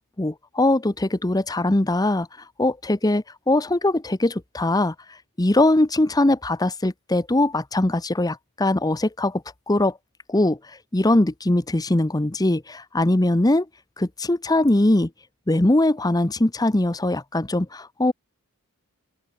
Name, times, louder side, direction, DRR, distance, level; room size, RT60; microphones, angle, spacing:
voice 1, 0.2-2.3 2.6-4.9 5.4-9.4 9.7-9.9 10.3-10.6 10.9-13.7 14.0-15.1 15.5-18.1, left 1 dB, 15° left, 0.8 m, -21 dB
open air
head